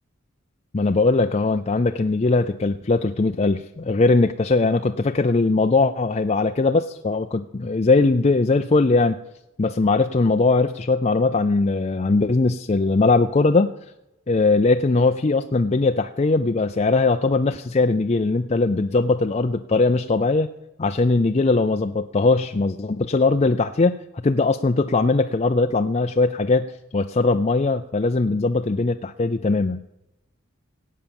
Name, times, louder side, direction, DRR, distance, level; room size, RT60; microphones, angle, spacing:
voice 1, 0.7-9.2 9.6-13.7 14.3-20.5 20.8-24.0 24.2-29.8, left 3 dB, 30° left, 7 dB, 0.5 m, -20 dB
17.5 x 8.5 x 7.0 m, 0.91 s
head